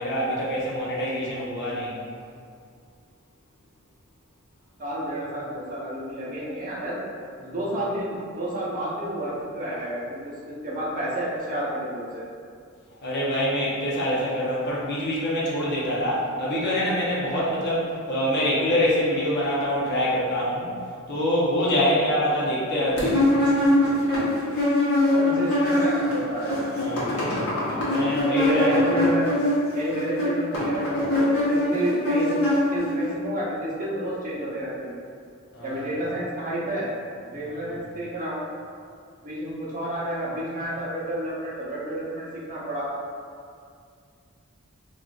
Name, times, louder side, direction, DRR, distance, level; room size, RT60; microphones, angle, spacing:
voice 1, 0.0-1.9 7.4-7.5 13.0-20.7 21.1-23.2 26.6-29.0 35.5-36.0 37.4-37.7, equal, 50° left, -7 dB, 0.8 m, -25 dB
voice 2, 4.8-7.0 7.4-12.2 25.1-26.7 28.3-29.3 29.7-32.3 32.7-35.0 35.6-36.9 37.2-38.4 39.2-42.9, right 1 dB, 40° right, -7 dB, 0.7 m, -30 dB
sound 1, 23.0-26.1 26.4-33.1, left 1 dB, 90° left, 0.9 m, -22 dB
3.7 x 2.4 x 2.4 m, 2.3 s
head